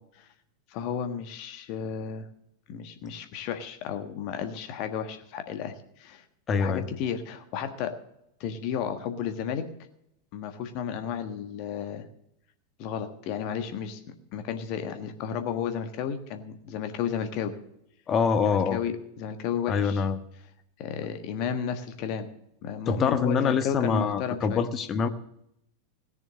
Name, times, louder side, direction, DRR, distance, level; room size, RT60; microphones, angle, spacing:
voice 1, 0.7-2.3 2.7-6.2 6.5-8.0 8.4-9.7 10.3-12.1 12.8-14.0 14.3-17.6 18.4-20.1 20.8-22.3 22.6-24.6, left 8 dB, 45° left, 7 dB, 1.5 m, -33 dB
voice 2, 6.5-6.8 18.1-18.8 19.7-20.2 22.9-25.1, left 6 dB, 25° left, 10 dB, 1.0 m, -25 dB
17.0 x 6.8 x 8.5 m, 0.78 s
figure-of-eight pair, 90°, 0 cm